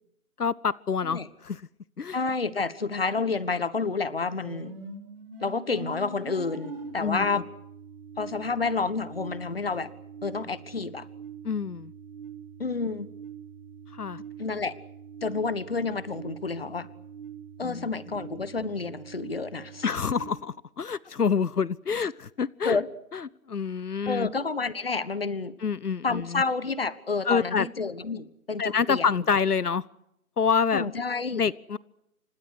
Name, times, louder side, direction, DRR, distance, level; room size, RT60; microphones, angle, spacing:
voice 1, 0.4-1.6 2.0-2.2 7.0-7.3 11.4-11.9 13.9-14.2 17.6-17.9 19.8-22.8 23.1-24.3 25.6-26.4 27.2-27.7 28.6-29.8 30.4-30.9 31.3-31.8, left 6 dB, 85° left, 22 dB, 0.9 m, -27 dB
voice 2, 2.1-4.7 5.4-7.5 8.2-9.9 10.2-11.1 12.6-13.1 14.4-14.8 15.2-16.9 17.6-19.8 22.6-22.9 24.1-25.5 26.0-29.1 30.7-31.4, left 4 dB, 40° left, 16 dB, 1.4 m, -29 dB
sound 1, 4.4-20.3, right 6 dB, 40° right, 5.3 m, -44 dB
29.0 x 26.0 x 6.4 m, 0.81 s
figure-of-eight pair, 170°, 44 cm